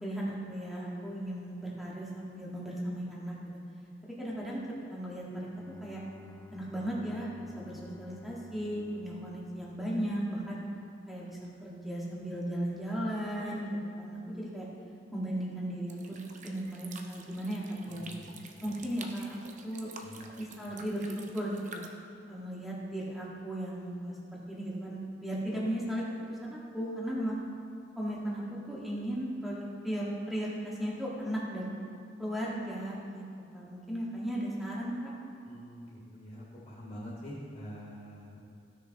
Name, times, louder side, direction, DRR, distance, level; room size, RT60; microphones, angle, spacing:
voice 1, 0.0-3.6 4.0-4.6 4.9-5.5 5.8-6.0 6.5-7.3 7.5-10.6 11.1-14.7 15.1-18.1 18.6-19.4 19.6-19.9 20.4-21.8 22.3-26.0 26.3-27.4 28.0-31.7 32.2-33.2 33.5-35.1, right 1 dB, ahead, -6 dB, 1.7 m, -36 dB
Bowed string instrument, 5.3-10.3, left 3 dB, 15° left, 0.4 m, -53 dB
sound 1, 15.9-21.9, right 4 dB, 40° right, 0.7 m, -49 dB
voice 2, 17.8-18.9 20.0-20.7 35.4-38.5, equal, 40° left, -8 dB, 2.4 m, -46 dB
15.0 x 6.5 x 2.9 m, 2.3 s
head